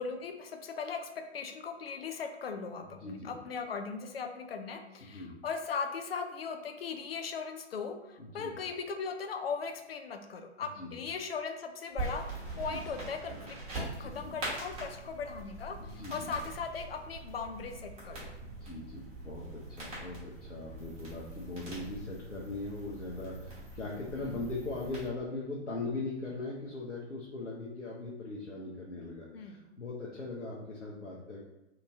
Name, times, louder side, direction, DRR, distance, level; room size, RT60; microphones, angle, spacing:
voice 1, 0.0-18.3 24.1-24.4 29.3-29.7, left 5 dB, 55° left, 6 dB, 0.5 m, -39 dB
voice 2, 3.0-3.3 5.0-5.3 8.2-8.5 10.8-10.9 12.7-12.8 13.8-14.4 15.8-16.3 18.4-31.4, left 2 dB, 90° left, -5 dB, 0.8 m, -40 dB
sound 1, 12.0-25.1, right 2 dB, 15° right, 1.2 m, -43 dB
2.9 x 2.6 x 3.4 m, 0.97 s
figure-of-eight pair, 130°, 35 cm